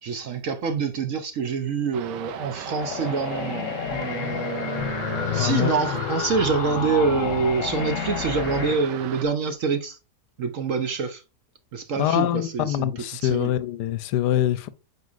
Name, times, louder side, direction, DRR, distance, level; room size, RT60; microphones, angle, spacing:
voice 1, 0.0-10.0 10.4-11.2 11.7-12.9 13.2-13.5, right 5 dB, 60° right, 1.0 m, -26 dB
sound 1, 1.9-9.3, right 9 dB, 85° right, 1.3 m, -38 dB
sound 2, 2.8-8.8, left 8 dB, 55° left, 1.0 m, -30 dB
voice 2, 5.3-5.7 12.0-14.7, left 12 dB, 85° left, 1.2 m, -24 dB
8.0 x 4.8 x 2.5 m
omnidirectional pair, 1.8 m